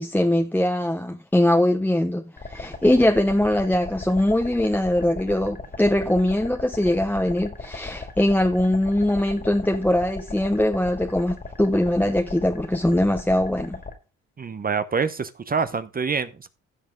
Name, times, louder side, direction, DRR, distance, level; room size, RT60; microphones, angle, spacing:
voice 1, 0.0-13.8, left 1 dB, 5° left, 0.9 m, -22 dB
sound 1, 2.4-13.9, left 3 dB, 30° left, 2.3 m, -37 dB
voice 2, 14.4-16.5, right 5 dB, 30° right, 0.8 m, -26 dB
16.0 x 5.5 x 3.8 m
cardioid pair, 90°, 30 cm